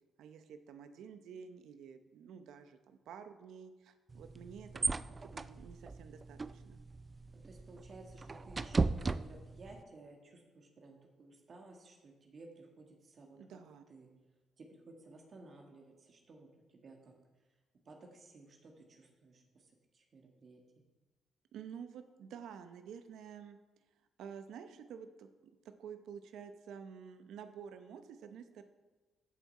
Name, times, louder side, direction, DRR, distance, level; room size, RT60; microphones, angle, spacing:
voice 1, 0.2-6.8 13.4-13.8 21.5-23.6 24.2-25.3 25.8-28.6, right 7 dB, 80° right, 9 dB, 0.7 m, -50 dB
sound 1, 4.1-9.8, right 3 dB, 30° right, 0.4 m, -38 dB
voice 2, 7.3-13.6 13.9-14.1 14.6-17.1 17.9-20.6, right 2 dB, 50° right, 1 dB, 1.7 m, -56 dB
13.5 x 5.9 x 4.1 m, 1.2 s
cardioid pair, 75°, 0 cm